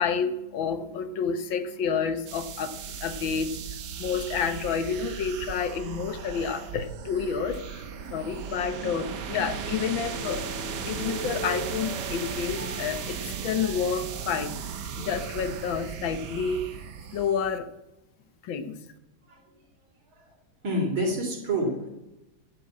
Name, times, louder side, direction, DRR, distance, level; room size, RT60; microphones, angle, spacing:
voice 1, 0.0-14.6 15.0-16.6 17.1-17.7 18.4-18.8, left 6 dB, 75° left, 10 dB, 1.8 m, -30 dB
sound 1, 2.3-17.6, right 7 dB, 65° right, 1.5 m, -37 dB
sound 2, 7.7-7.8 8.3-15.5, right 1 dB, 5° left, 2.5 m, -41 dB
voice 2, 19.3-19.7 20.1-20.4 20.6-21.9, right 1 dB, 85° right, 1 dB, 4.1 m, -29 dB
11.5 x 8.0 x 8.5 m, 0.94 s
omnidirectional pair, 2.2 m